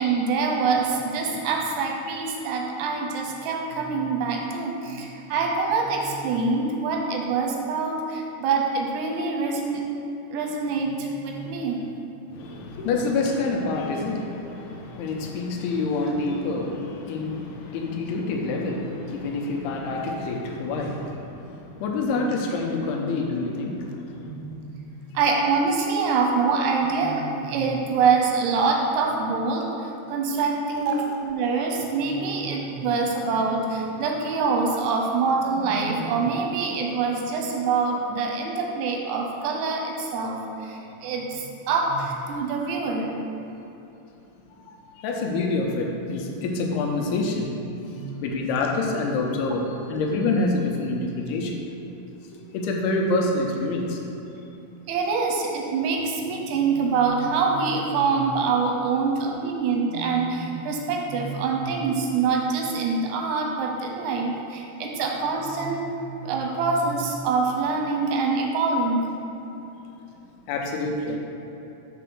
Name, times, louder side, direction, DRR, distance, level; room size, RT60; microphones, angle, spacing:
voice 1, 0.0-9.8 10.3-11.8 22.2-22.3 24.3-24.8 25.1-29.6 30.1-43.1 48.0-48.2 48.5-48.6 54.9-69.1, right 4 dB, 90° right, 1 dB, 3.0 m, -25 dB
voice 2, 12.3-24.4 45.0-47.5 48.2-51.6 52.2-54.0 70.5-71.2, left 3 dB, 85° left, 0 dB, 2.6 m, -27 dB
6.9 x 4.0 x 6.0 m, 2.9 s
omnidirectional pair, 4.7 m